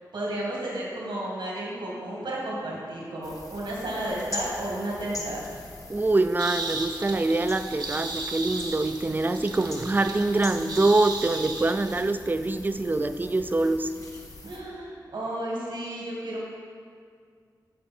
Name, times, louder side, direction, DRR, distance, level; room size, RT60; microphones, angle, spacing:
voice 1, 0.1-5.5 14.4-16.5, right 1 dB, 85° right, -4 dB, 2.1 m, -32 dB
sound 1, 3.2-14.6, left 2 dB, 45° left, 1.2 m, -42 dB
voice 2, 5.9-13.9, right 2 dB, 25° right, 10 dB, 0.4 m, -24 dB
sound 2, 6.4-12.0, right 3 dB, 70° right, 0.9 m, -36 dB
10.5 x 5.5 x 4.3 m, 2.1 s
wide cardioid pair, 70°, 8 cm